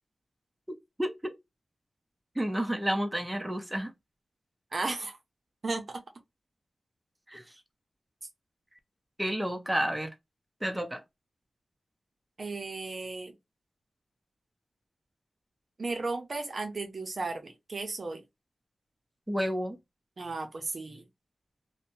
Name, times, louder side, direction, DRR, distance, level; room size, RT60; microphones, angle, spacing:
voice 1, 0.7-1.3 2.3-3.9 7.3-7.4 9.2-10.1 10.6-11.0 19.3-19.8, equal, 15° right, 0.8 m, -31 dB
voice 2, 4.7-5.2 5.6-6.0 12.4-13.3 15.8-18.2 20.2-21.0, right 3 dB, 60° right, 0.7 m, -35 dB
2.6 x 2.2 x 2.7 m
cardioid pair, 40°, 0 cm